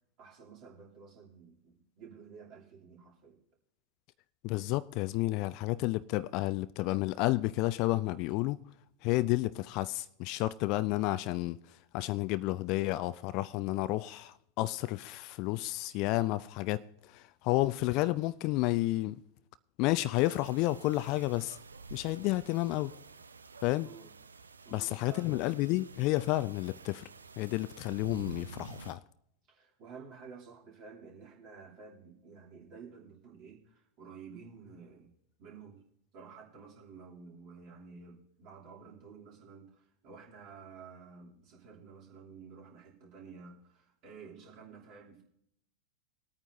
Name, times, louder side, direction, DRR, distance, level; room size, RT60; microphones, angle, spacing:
voice 1, 0.2-3.4 23.8-24.1 24.6-25.4 29.5-35.1 35.4-35.9 36.1-45.2, right 5 dB, 40° right, 2.8 m, -51 dB
voice 2, 4.4-8.6 9.0-19.2 19.8-21.6 21.9-22.9 23.6-23.9 24.7-27.1 27.4-29.0, left 18 dB, 40° left, 0.4 m, -31 dB
sound 1, 20.1-28.9, right 4 dB, 75° right, 0.6 m, -50 dB
21.5 x 9.0 x 2.6 m
figure-of-eight pair, 90°, 0 cm